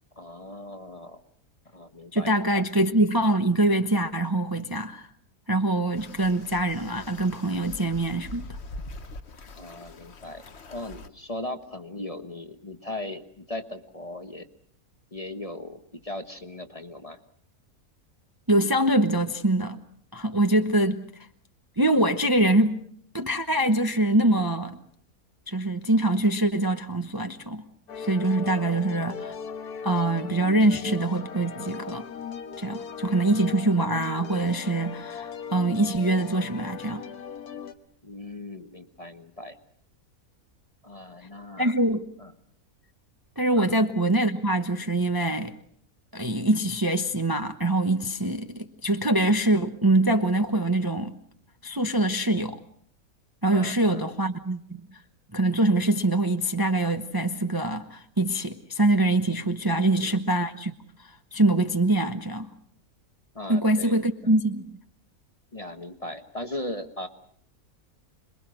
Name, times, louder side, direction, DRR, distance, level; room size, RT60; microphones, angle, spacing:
voice 1, 0.2-1.2 1.7-2.6 9.5-14.5 15.1-17.2 28.5-28.7 38.0-39.6 40.8-41.8 42.2-42.3 43.6-43.7 53.5-54.0 59.7-60.2 63.3-64.3 65.5-67.1, left 1 dB, 25° left, 7 dB, 1.2 m, -38 dB
voice 2, 2.1-5.1 5.5-8.4 18.5-19.8 20.1-21.0 21.8-22.8 23.1-24.8 25.5-27.6 28.0-29.3 29.8-32.1 32.6-37.0 41.6-42.1 43.4-45.5 46.1-51.2 51.6-52.6 53.4-54.6 55.3-60.7 61.3-62.5 63.5-64.7, right 1 dB, 15° right, 7 dB, 0.9 m, -24 dB
sound 1, 6.0-11.1, left 2 dB, 50° left, 1.5 m, -43 dB
sound 2, 27.9-37.7, left 6 dB, 90° left, 1.8 m, -38 dB
27.0 x 22.0 x 6.3 m, 0.63 s
omnidirectional pair, 1.6 m